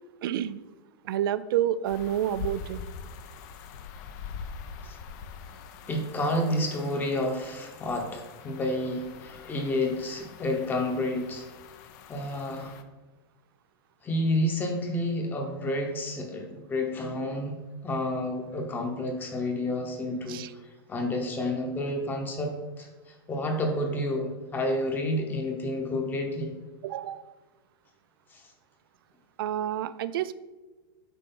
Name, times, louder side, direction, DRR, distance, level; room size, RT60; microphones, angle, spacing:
voice 1, 0.2-0.6 1.0-2.8 20.3-20.5 26.8-27.2 29.4-30.3, right 11 dB, 65° right, 16 dB, 0.4 m, -29 dB
sound 1, 1.8-12.8, left 6 dB, 45° left, 0.6 m, -44 dB
voice 2, 5.9-11.5 12.1-12.7 14.0-17.5 17.8-20.4 20.9-22.9 23.3-26.5, left 1 dB, 15° left, 3 dB, 1.0 m, -30 dB
8.2 x 4.9 x 3.9 m, 1.2 s
supercardioid pair, 150°, 13 cm